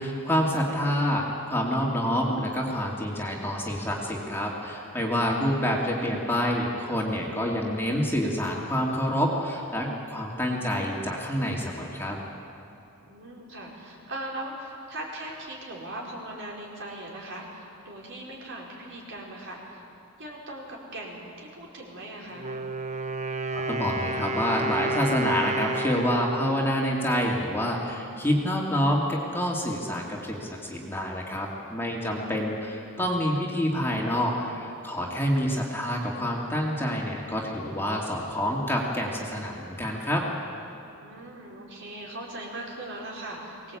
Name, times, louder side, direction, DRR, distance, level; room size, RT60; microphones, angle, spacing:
voice 1, 0.0-12.2 23.5-40.2, equal, 10° left, -2 dB, 2.5 m, -27 dB
voice 2, 13.1-19.8 20.2-22.5 40.9-43.8, right 1 dB, 55° right, -2 dB, 4.8 m, -40 dB
Wind instrument woodwind instrument, 22.3-28.1, right 2 dB, 30° right, 1.0 m, -32 dB
23.5 x 19.0 x 8.5 m, 2.7 s
head